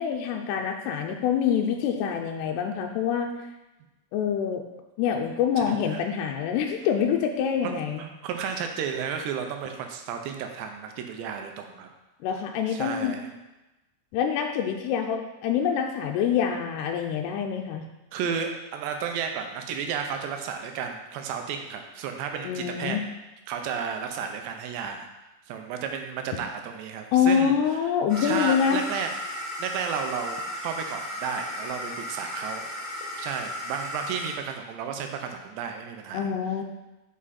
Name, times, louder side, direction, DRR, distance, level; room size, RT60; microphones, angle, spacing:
voice 1, 0.0-3.3 4.1-4.6 5.0-8.0 12.2-13.2 14.1-17.9 22.4-23.0 27.1-28.8 36.1-36.6, left 8 dB, 85° left, 2 dB, 2.6 m, -26 dB
voice 2, 5.7-6.0 7.6-11.9 12.7-13.3 18.1-23.0 23.5-25.1 25.5-27.5 28.2-29.1 29.6-30.4 30.6-32.7 33.2-36.3, right 7 dB, 85° right, 5 dB, 2.9 m, -33 dB
sound 1, 28.1-34.3, left 1 dB, 40° left, 2.7 m, -35 dB
7.4 x 6.1 x 4.2 m, 1.0 s
omnidirectional pair, 5.0 m